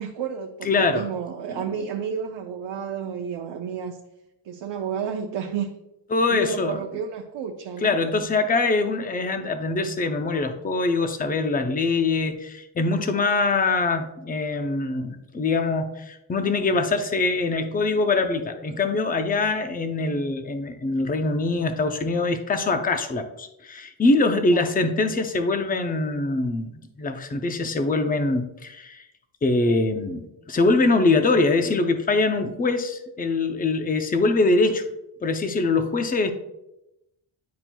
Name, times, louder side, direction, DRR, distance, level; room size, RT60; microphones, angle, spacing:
voice 1, 0.0-4.0 4.4-5.7 6.3-7.9 24.5-24.6, right 7 dB, 70° right, 3 dB, 0.7 m, -31 dB
voice 2, 0.6-1.1 1.5-1.6 6.1-6.8 7.8-26.7 27.0-29.0 29.4-34.8 35.2-36.3, left 3 dB, 20° left, 7 dB, 0.5 m, -23 dB
10.5 x 4.4 x 2.2 m, 0.90 s
wide cardioid pair, 130°, 47 cm